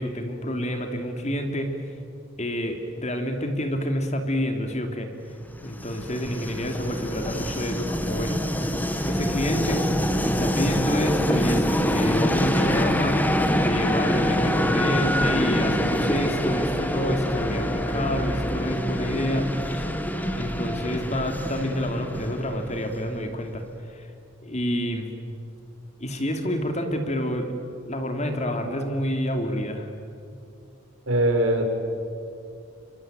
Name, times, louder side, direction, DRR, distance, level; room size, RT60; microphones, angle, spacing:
voice 1, 0.0-1.7 2.4-5.1 5.6-8.4 9.0-9.9 10.2-13.3 13.6-19.9 20.4-23.6 23.9-24.1 24.4-25.1 26.0-27.5 27.8-29.9, equal, 35° left, 5 dB, 2.9 m, -28 dB
Train, 5.5-23.3, equal, 10° left, 1.7 m, -25 dB
voice 2, 31.1-31.7, right 1 dB, 85° right, 4 dB, 4.8 m, -21 dB
26.0 x 24.5 x 9.1 m, 2.5 s
head